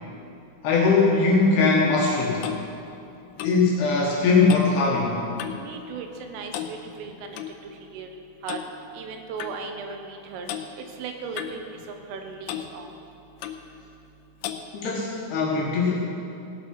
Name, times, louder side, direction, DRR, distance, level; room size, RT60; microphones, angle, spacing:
voice 1, 0.6-2.5 3.4-5.2 14.7-15.9, left 4 dB, 70° left, -3 dB, 2.7 m, -20 dB
Clock, 1.9-5.7 6.0-6.3 6.5-7.5 8.5-8.7 9.4-9.6 10.5-10.7 11.4-12.2 12.5-12.7 13.4-13.7 14.4-14.7, left 10 dB, 85° left, 2.5 m, -36 dB
voice 2, 5.6-7.4 7.6-8.1 8.4-8.6 8.9-10.5 11.0-11.6 11.9-12.9, right 5 dB, 80° right, 4 dB, 3.5 m, -37 dB
17.5 x 8.9 x 6.1 m, 2.8 s
omnidirectional pair, 5.9 m